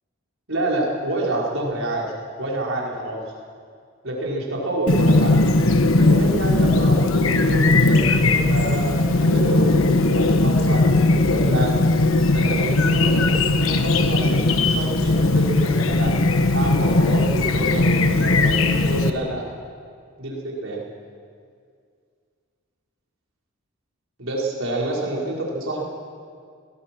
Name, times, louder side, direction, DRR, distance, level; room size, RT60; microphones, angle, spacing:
voice 1, 0.5-2.1 2.4-3.2 4.0-5.4 6.0-11.7 12.3-16.2 16.5-19.4 20.2-20.8 24.2-25.8, right 1 dB, 70° right, -3 dB, 5.1 m, -27 dB
Chirp tweet, 4.9-19.1, left 2 dB, 75° left, 1.2 m, -18 dB
22.5 x 19.0 x 6.2 m, 2.1 s
head